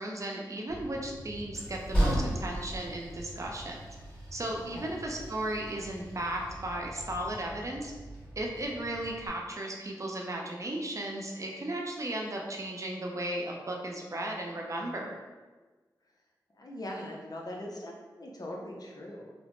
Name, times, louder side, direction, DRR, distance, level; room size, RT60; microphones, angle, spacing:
voice 1, 0.0-3.8 4.3-7.9 8.4-15.1, right 1 dB, 40° right, 0 dB, 0.6 m, -35 dB
Train, 0.7-9.3, right 1 dB, 20° left, 1.4 m, -36 dB
voice 2, 4.4-4.9 16.0-16.1 16.5-19.3, left 1 dB, 55° left, -1 dB, 0.6 m, -41 dB
2.8 x 2.1 x 3.0 m, 1.3 s
cardioid pair, 40°, 8 cm